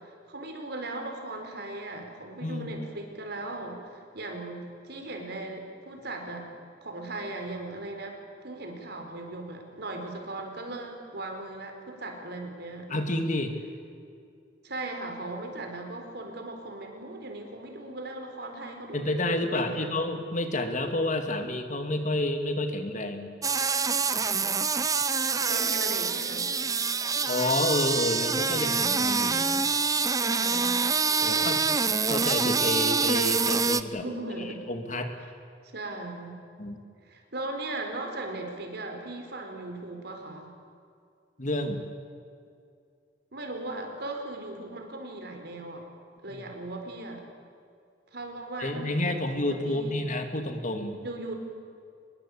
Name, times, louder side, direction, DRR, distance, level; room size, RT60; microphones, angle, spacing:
voice 1, 0.3-6.5 6.8-13.4 14.6-19.9 25.4-26.5 30.1-30.9 31.2-31.5 33.9-34.6 35.6-36.4 37.0-40.5 43.3-45.8 46.2-47.2 48.1-50.0 51.0-51.3, right 2 dB, 65° right, 4 dB, 4.2 m, -38 dB
voice 2, 12.9-13.5 18.9-23.3 27.3-29.7 31.2-31.6 32.1-34.0 34.7-35.1 36.6-36.8 41.4-41.8 46.3-46.4 48.6-51.0, left 1 dB, 45° left, 6 dB, 2.3 m, -29 dB
sound 1, 23.4-33.8, right 5 dB, 20° right, 0.7 m, -26 dB
24.0 x 21.5 x 8.5 m, 2.4 s
head